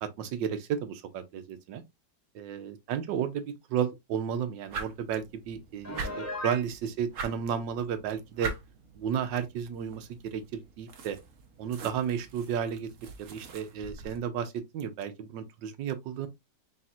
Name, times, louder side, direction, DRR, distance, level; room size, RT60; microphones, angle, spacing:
voice 1, 0.0-1.8 2.3-8.5 9.0-11.2 11.6-12.9 13.2-16.3, right 8 dB, 85° right, 1.4 m, -33 dB
sound 1, 4.7-14.2, right 4 dB, 55° right, 1.1 m, -43 dB
Piano, 5.8-6.7, left 1 dB, 10° left, 0.9 m, -36 dB
4.3 x 4.1 x 2.4 m
omnidirectional pair, 1.9 m